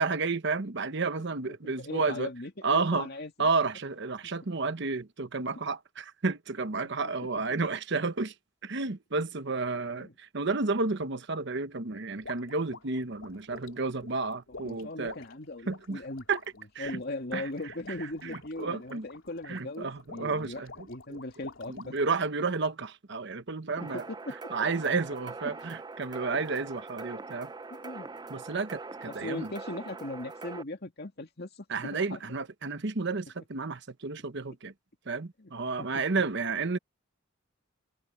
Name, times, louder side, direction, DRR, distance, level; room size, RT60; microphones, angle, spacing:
voice 1, 0.0-2.3 2.6-3.1 3.4-8.3 8.6-15.2 15.7-16.0 16.3-16.4 16.7-17.0 17.3-17.5 17.9-19.1 19.5-21.2 21.7-24.1 24.5-27.5 28.3-29.5 31.7-34.7 35.1-36.8, right 4 dB, 60° right, 1.0 m, -31 dB
voice 2, 1.5-3.3 7.0-7.1 7.4-7.5 9.9-10.1 14.5-16.3 16.8-20.6 20.9-22.0 23.8-24.4 25.4-25.5 27.7-28.1 29.1-32.2 35.4-35.5 35.8-35.9, left 2 dB, 55° left, 2.5 m, -39 dB
sound 1, 12.2-22.1, left 3 dB, 85° left, 2.8 m, -48 dB
sound 2, 23.8-30.6, right 3 dB, 20° right, 0.5 m, -43 dB
head